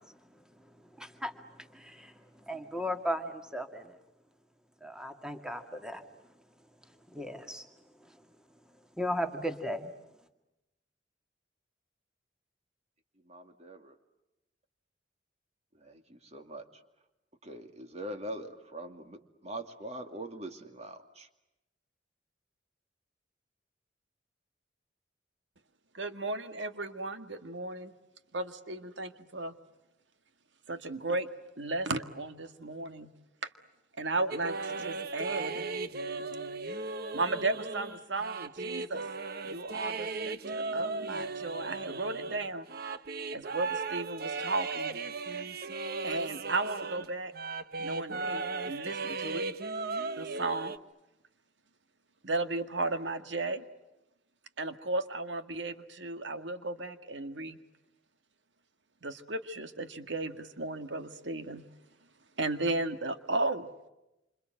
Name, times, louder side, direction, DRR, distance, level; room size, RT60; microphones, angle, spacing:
voice 1, 1.0-1.4 1.7-2.1 2.5-4.0 4.8-6.0 7.1-7.6 9.0-9.9, equal, 5° right, 6 dB, 2.1 m, -36 dB
voice 2, 13.2-14.0 15.7-16.7 17.4-21.3, right 1 dB, 35° right, 6 dB, 2.5 m, -43 dB
voice 3, 25.9-27.9 28.3-29.5 30.7-31.3 31.6-33.1 34.0-35.7 37.1-39.0 39.4-42.7 43.3-45.0 46.0-47.3 47.8-49.4 50.2-50.8 52.2-53.6 54.6-57.6 59.0-61.6 62.4-63.7, right 2 dB, 75° right, 9 dB, 1.9 m, -35 dB
sound 1, 34.3-47.1 47.3-50.8, right 3 dB, 55° right, 1.1 m, -36 dB
28.0 x 26.5 x 7.8 m, 0.95 s
head